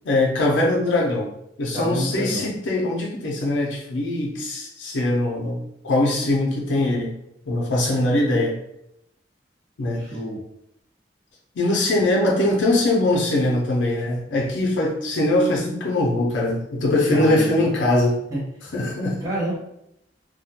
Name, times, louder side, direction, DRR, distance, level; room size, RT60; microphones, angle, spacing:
voice 1, 0.1-1.3 1.6-7.2 7.5-8.6 9.8-10.1 11.6-18.2 18.7-19.3, left 1 dB, 90° left, -2 dB, 0.5 m, -22 dB
voice 2, 1.7-2.5 9.9-10.4 17.1-17.7 18.3-18.4 19.2-19.6, right 1 dB, 20° right, -7 dB, 0.7 m, -28 dB
2.2 x 2.1 x 2.7 m, 0.79 s
head